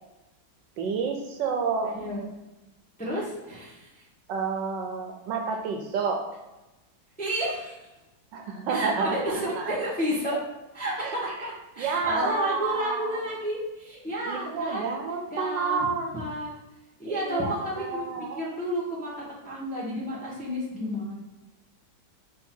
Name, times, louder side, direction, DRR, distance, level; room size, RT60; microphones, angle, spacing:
voice 1, 0.8-2.0 4.3-6.3 8.3-9.7 11.0-11.5 11.8-13.2 14.2-16.2 17.0-18.4, right 5 dB, 75° right, 2 dB, 1.2 m, -30 dB
voice 2, 1.9-2.2 3.0-4.0 7.2-7.7 8.7-10.4 10.7-15.0 15.3-15.9 16.1-16.5 17.0-19.1 19.4-21.2, equal, 5° left, -6 dB, 0.7 m, -31 dB
3.7 x 3.3 x 4.3 m, 1.0 s
omnidirectional pair, 2.1 m